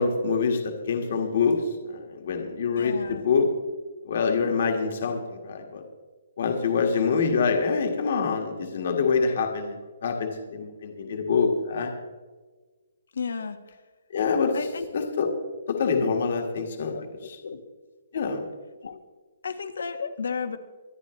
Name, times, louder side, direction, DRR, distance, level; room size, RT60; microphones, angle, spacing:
voice 1, 0.0-3.5 4.0-5.8 6.4-11.9 14.1-14.6 14.9-15.3 15.7-17.4 18.1-18.4, left 5 dB, 40° left, 4 dB, 1.6 m, -25 dB
voice 2, 2.7-3.2 13.1-13.6 14.5-14.9 16.9-17.6 18.8-19.0 19.4-20.6, left 5 dB, 70° left, 9 dB, 1.4 m, -33 dB
24.0 x 10.5 x 3.1 m, 1.3 s
hypercardioid pair, 180°, 0 cm